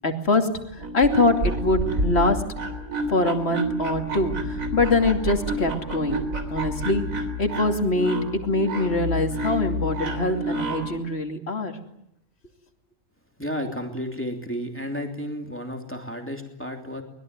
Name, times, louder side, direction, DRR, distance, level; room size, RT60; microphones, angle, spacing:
voice 1, 0.0-0.5 0.8-2.4 3.1-6.2 6.5-7.0 7.4-11.7, left 2 dB, 45° left, 5 dB, 2.9 m, -23 dB
sound 1, 0.7-11.0, right 1 dB, 75° right, 3.8 m, -29 dB
voice 2, 13.4-17.0, equal, 10° left, 3 dB, 3.0 m, -32 dB
24.5 x 21.5 x 9.6 m, 0.79 s
omnidirectional pair, 1.4 m